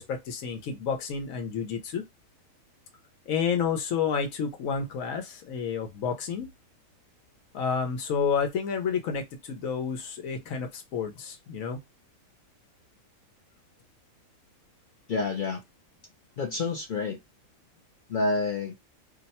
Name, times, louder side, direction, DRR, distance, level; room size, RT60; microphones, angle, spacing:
voice 1, 0.0-2.0 3.3-6.5 7.5-11.8, left 6 dB, 85° left, 1.1 m, -30 dB
voice 2, 15.1-15.6 16.4-17.2 18.1-18.8, left 3 dB, 60° left, 0.5 m, -28 dB
2.7 x 2.1 x 4.0 m
omnidirectional pair, 1.4 m